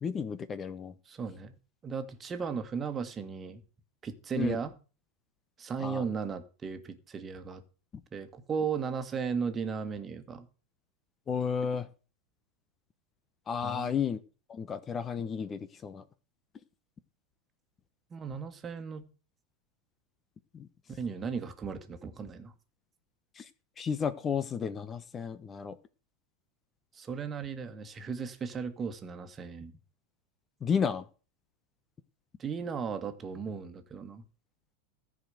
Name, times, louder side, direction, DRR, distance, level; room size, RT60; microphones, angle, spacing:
voice 1, 0.0-0.9 4.4-4.6 5.8-6.1 11.3-11.9 13.5-14.2 14.5-16.0 20.5-20.7 23.4-23.5 23.8-25.8 30.6-31.0, left 6 dB, 25° left, 1.0 m, -32 dB
voice 2, 1.1-1.6 1.8-3.6 4.0-4.7 5.6-7.6 8.1-10.5 13.6-14.0 18.1-19.1 21.0-22.5 26.9-29.7 32.4-34.2, right 6 dB, 25° right, 1.8 m, -36 dB
14.5 x 5.2 x 7.8 m
hypercardioid pair, 100°, 0 cm